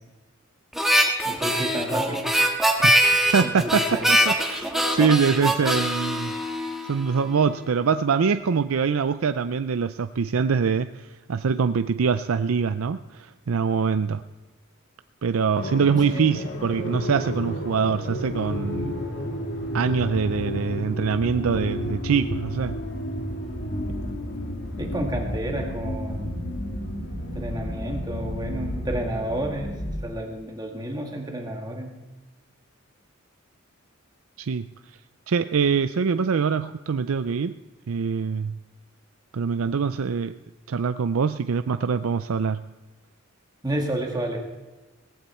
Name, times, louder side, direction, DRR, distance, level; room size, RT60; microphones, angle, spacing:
Harmonica, 0.7-7.2, equal, ahead, 1.6 m, -22 dB
voice 1, 1.3-2.3 3.4-4.1 16.1-16.3 24.8-26.3 27.3-29.7 30.0-31.9 43.6-44.4, right 1 dB, 20° right, 1 dB, 1.8 m, -30 dB
voice 2, 3.3-3.8 4.1-6.3 6.9-10.9 11.3-14.2 15.2-19.0 19.7-22.8 34.4-34.7 35.3-37.6 37.9-38.5 39.3-40.3 40.7-42.6, right 6 dB, 85° right, 10 dB, 0.5 m, -24 dB
sound 1, 15.6-30.0, left 1 dB, 60° left, 1.7 m, -31 dB
18.5 x 15.5 x 4.3 m, 1.2 s
head